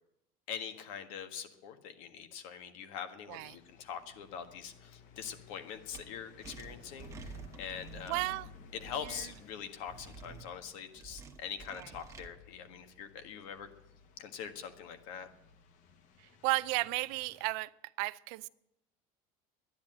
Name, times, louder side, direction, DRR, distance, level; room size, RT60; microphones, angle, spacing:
voice 1, 0.5-8.3 8.7-13.7 14.2-15.3, left 8 dB, 85° left, 1.6 m, -43 dB
sound 1, 3.3-17.5, left 4 dB, 50° left, 1.2 m, -57 dB
sound 2, 5.9-6.0 6.4-8.3 8.9-9.4 9.9-10.4 11.0-12.3, right 4 dB, 20° right, 1.1 m, -49 dB
voice 2, 8.1-8.5 16.4-17.7 18.0-18.5, right 23 dB, 70° right, 0.5 m, -33 dB
12.0 x 10.5 x 8.9 m
cardioid pair, 165°, 17 cm